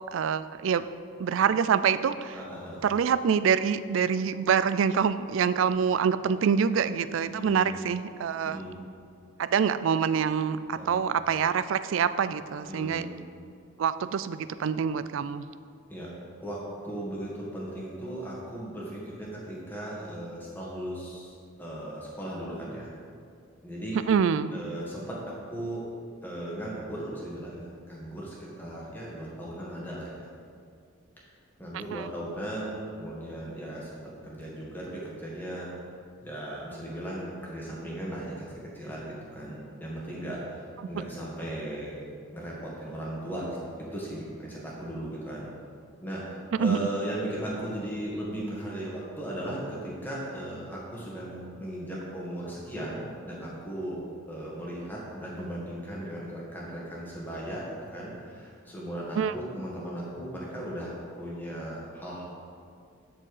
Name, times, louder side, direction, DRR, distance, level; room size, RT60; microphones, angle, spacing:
voice 1, 0.1-0.9 1.2-2.4 2.8-8.6 9.4-13.1 13.8-15.5 24.1-24.5 31.9-32.0 46.6-46.9 59.2-59.3, right 7 dB, 65° right, 14 dB, 0.3 m, -26 dB
voice 2, 2.3-2.8 7.3-7.9 8.4-8.7 10.7-11.0 12.7-13.1 15.9-16.1 16.4-22.9 23.6-24.0 24.5-25.8 26.2-30.3 31.6-35.7 36.2-38.3 38.7-41.9 42.3-45.5 46.0-54.0 54.3-62.2, right 1 dB, 10° left, -5 dB, 1.7 m, -37 dB
12.5 x 4.5 x 4.9 m, 2.3 s
head